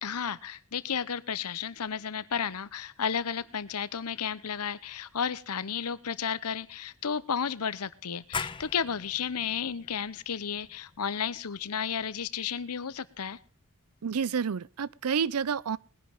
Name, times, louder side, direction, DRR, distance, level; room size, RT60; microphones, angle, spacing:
voice 1, 0.0-13.4, left 7 dB, 90° left, 0.8 m, -33 dB
sound 1, 8.3-13.7, left 5 dB, 20° left, 0.6 m, -42 dB
voice 2, 14.0-15.8, right 6 dB, 85° right, 0.5 m, -29 dB
20.5 x 10.5 x 3.6 m
head